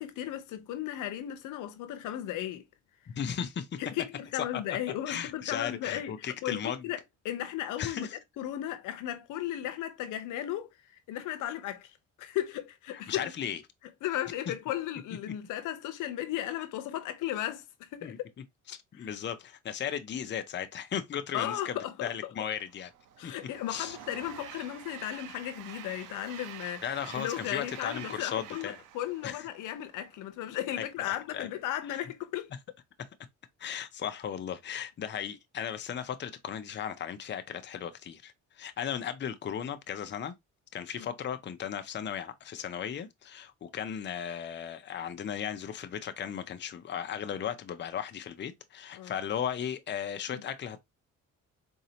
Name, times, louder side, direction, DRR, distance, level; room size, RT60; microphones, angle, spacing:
voice 1, 0.0-2.6 3.8-7.0 7.2-8.1 8.4-10.7 11.1-13.3 14.0-18.3 19.0-19.1 21.3-22.3 23.2-26.8 27.2-32.5 41.0-41.1 49.0-49.1 50.3-50.4, left 12 dB, 85° left, 0.7 m, -35 dB
voice 2, 3.1-3.8 4.3-4.8 5.1-6.9 7.8-8.2 12.9-13.6 14.5-14.6 18.0-18.2 18.7-22.9 23.2-23.3 23.7-24.0 26.8-28.8 29.2-29.5 30.8-31.5 31.9-32.0 33.6-40.3 40.7-50.8, left 8 dB, 35° left, 0.6 m, -36 dB
Train, 22.7-30.2, right 10 dB, 90° right, 0.6 m, -48 dB
4.1 x 2.7 x 2.7 m
cardioid pair, 90°, 30 cm